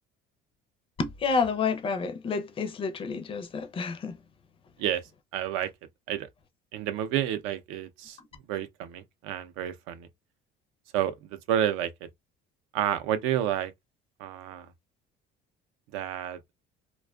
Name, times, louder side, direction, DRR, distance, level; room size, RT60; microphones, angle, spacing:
voice 1, 1.0-4.2, left 5 dB, 25° left, 0.4 m, -29 dB
voice 2, 4.8-5.7 6.1-6.3 6.7-10.1 10.9-11.9 12.7-13.7 14.2-14.7 15.9-16.4, right 11 dB, 80° right, 0.5 m, -30 dB
2.5 x 2.2 x 2.3 m
cardioid pair, 140°, 20 cm